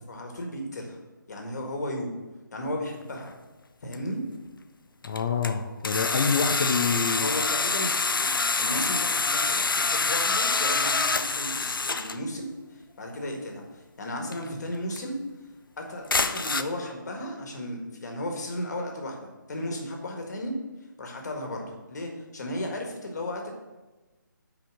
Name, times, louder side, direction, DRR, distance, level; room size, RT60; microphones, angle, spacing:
voice 1, 0.1-1.0 1.3-2.2 2.5-3.3 3.8-4.2 7.1-15.2 15.8-20.5 21.0-23.5, left 1 dB, 55° left, 2 dB, 1.7 m, -35 dB
sound 1, 3.2-3.3 3.9-4.0 5.0-5.5 5.8-12.2 14.3-14.5 15.0-15.1 16.1-16.6, left 4 dB, 80° left, 0.5 m, -26 dB
voice 2, 5.0-7.4, left 5 dB, 35° left, 1 dB, 0.6 m, -27 dB
5.8 x 5.0 x 6.5 m, 1.2 s
figure-of-eight pair, 155°, 11 cm